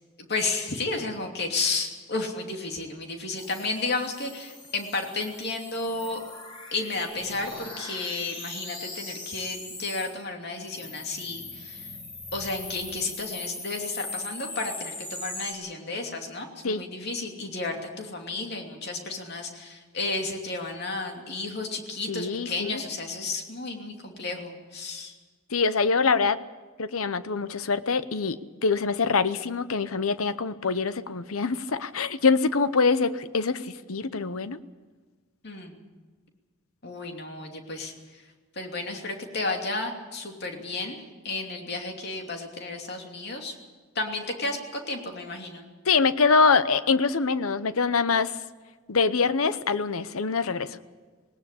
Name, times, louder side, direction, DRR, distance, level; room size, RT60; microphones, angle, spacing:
voice 1, 0.3-6.2 6.7-11.8 12.3-25.1 35.4-35.8 36.8-37.9 38.6-43.5 43.9-45.7, left 3 dB, 50° left, 3 dB, 2.8 m, -32 dB
sound 1, 3.4-10.2 10.6-15.5, left 2 dB, 25° left, 2.9 m, -40 dB
voice 2, 22.1-22.8 25.5-26.4 26.8-34.6 45.9-48.3 48.9-50.8, left 4 dB, 90° left, 14 dB, 0.9 m, -24 dB
19.0 x 18.5 x 8.5 m, 1.4 s
head